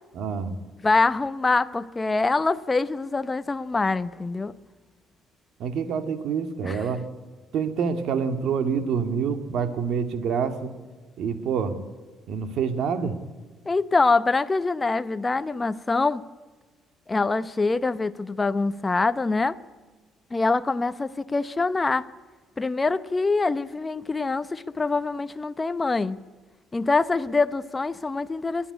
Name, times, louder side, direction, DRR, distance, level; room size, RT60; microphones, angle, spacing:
voice 1, 0.1-0.5 5.6-7.1 7.5-10.7 11.2-11.8 12.3-13.2, right 6 dB, 65° right, 2.0 m, -27 dB
voice 2, 0.8-4.5 6.6-6.7 13.7-16.2 17.1-19.6 20.3-22.1 22.6-26.2 26.7-28.7, left 3 dB, 20° left, 0.8 m, -24 dB
27.0 x 11.0 x 9.8 m
cardioid pair, 120°, 0 cm